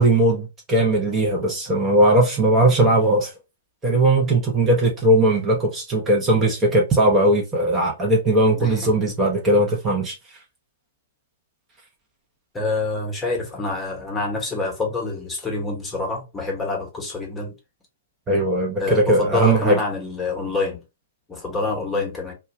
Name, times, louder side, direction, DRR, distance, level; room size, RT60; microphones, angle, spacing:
voice 1, 0.0-3.3 3.8-10.1 18.3-19.8, right 1 dB, 20° right, 0.7 m, -19 dB
voice 2, 8.6-8.9 12.5-17.5 18.8-20.8 21.3-22.3, left 3 dB, 15° left, 1.0 m, -27 dB
2.2 x 2.2 x 2.9 m
hypercardioid pair, 115°, 0 cm